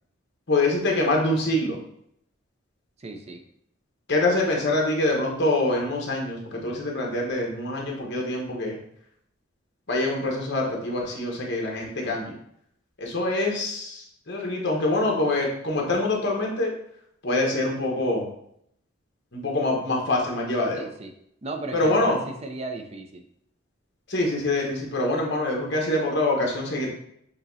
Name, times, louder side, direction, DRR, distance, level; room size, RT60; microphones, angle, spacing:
voice 1, 0.5-1.8 4.1-8.8 9.9-12.3 13.0-16.7 17.2-18.3 19.3-20.8 21.7-22.2 24.1-26.9, left 2 dB, 55° left, -1 dB, 1.1 m, -25 dB
voice 2, 3.0-3.4 20.7-21.1 21.4-23.2, right 3 dB, 30° right, 5 dB, 0.5 m, -35 dB
6.7 x 2.9 x 2.7 m, 0.71 s
head